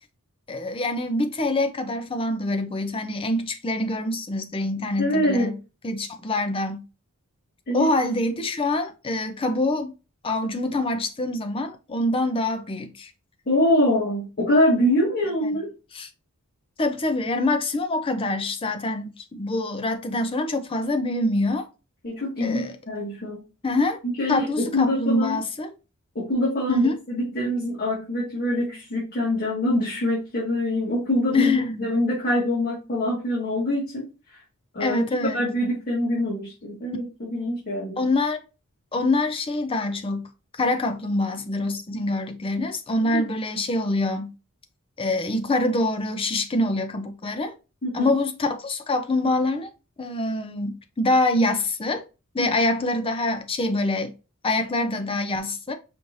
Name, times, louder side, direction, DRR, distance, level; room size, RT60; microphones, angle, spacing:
voice 1, 0.5-5.6 5.8-6.9 7.7-9.9 10.2-13.1 15.4-15.6 15.9-16.1 16.8-21.7 22.4-22.7 23.6-24.0 24.3-25.7 26.7-27.0 31.3-31.9 34.8-35.4 38.0-38.4 38.9-44.3 45.0-47.5 47.9-49.7 50.0-52.0 52.3-54.1 54.4-55.7, left 2 dB, 25° left, 0.5 m, -25 dB
voice 2, 5.0-5.5 7.7-7.9 13.4-15.7 22.0-23.4 24.0-25.4 26.1-31.5 31.8-34.4 34.7-35.0 35.3-38.0 43.0-43.2 47.8-48.1 52.4-52.5, left 1 dB, 45° left, 1.7 m, -24 dB
5.1 x 3.1 x 2.6 m
head